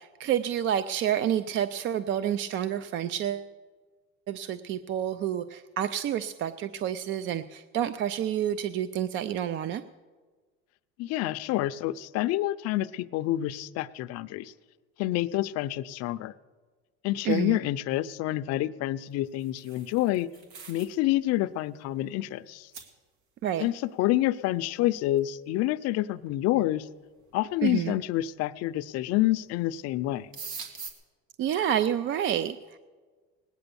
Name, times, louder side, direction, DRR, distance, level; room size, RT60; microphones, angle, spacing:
voice 1, 0.0-3.5 4.3-9.8 17.2-17.6 23.4-23.7 27.6-27.9 31.4-32.6, right 10 dB, 40° right, 13 dB, 0.4 m, -29 dB
voice 2, 11.0-14.5 15.0-16.3 17.0-20.3 20.7-22.7 23.6-26.9 27.3-30.3, left 15 dB, 55° left, 14 dB, 0.5 m, -28 dB
sound 1, 19.2-21.0 21.3-21.6 22.2-22.3 22.7-22.9 25.2-25.3 26.3-26.4 27.1-27.5 28.8-29.2 29.5-29.7 30.0-30.9, right 5 dB, 80° right, 2.1 m, -43 dB
19.0 x 9.0 x 6.9 m, 1.4 s
cardioid pair, 155°, 31 cm